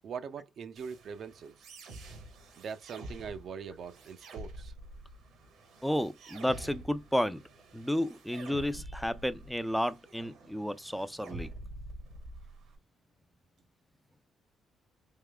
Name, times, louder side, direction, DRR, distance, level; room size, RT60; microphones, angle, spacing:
voice 1, 0.0-1.5 2.6-4.7, right 6 dB, 60° right, 0.6 m, -42 dB
sound 1, 0.8-12.8, right 1 dB, 80° right, 1.5 m, -48 dB
voice 2, 5.8-7.4 7.7-11.5, equal, ahead, 0.5 m, -32 dB
3.7 x 3.2 x 3.4 m
cardioid pair, 90°, 0 cm